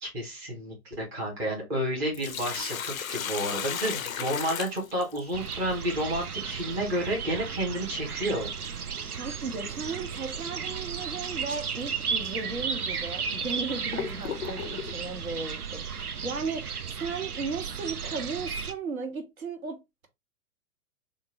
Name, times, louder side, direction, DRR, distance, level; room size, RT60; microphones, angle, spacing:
voice 1, 0.0-8.5, equal, 5° right, 0.5 m, -31 dB
Sink (filling or washing), 1.9-5.5 7.9-8.0 9.9-10.1 10.6-10.7 11.5-11.6 12.3-12.4 13.1-15.0, left 9 dB, 65° left, 0.5 m, -35 dB
sound 1, 5.3-18.7, right 6 dB, 85° right, 0.6 m, -34 dB
voice 2, 9.1-20.1, right 4 dB, 70° right, 1.0 m, -36 dB
3.7 x 2.0 x 3.8 m
figure-of-eight pair, 115°, 44 cm